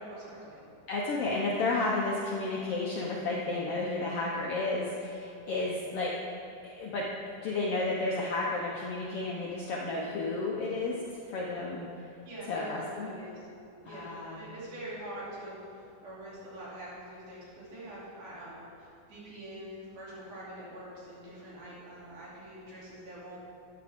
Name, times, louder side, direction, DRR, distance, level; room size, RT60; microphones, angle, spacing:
voice 1, 0.1-0.6 12.3-13.4 13.8-23.4, right 1 dB, 75° right, -8 dB, 4.3 m, -45 dB
voice 2, 0.9-6.1 6.6-7.0 7.4-11.9 12.5-13.1 13.8-14.4, left 2 dB, 70° left, -3 dB, 1.4 m, -32 dB
13.5 x 8.8 x 3.5 m, 2.6 s
omnidirectional pair, 3.7 m